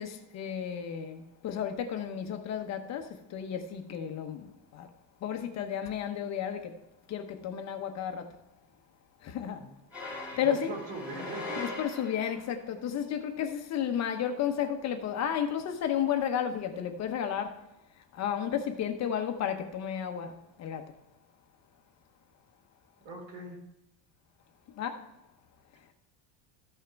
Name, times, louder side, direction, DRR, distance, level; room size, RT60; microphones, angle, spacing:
voice 1, 0.0-3.0 3.3-4.4 4.8-4.9 5.2-6.7 7.1-8.2 9.3-9.6 10.4-10.7 11.6-17.5 18.2-20.3 20.6-20.8 24.8-25.0, left 9 dB, 35° left, 0.9 m, -32 dB
sound 1, 9.9-12.5, left 2 dB, ahead, 3.0 m, -40 dB
voice 2, 10.4-11.7 23.0-23.6, right 2 dB, 75° right, 3.8 m, -40 dB
14.0 x 5.6 x 4.6 m
cardioid pair, 165°, 46 cm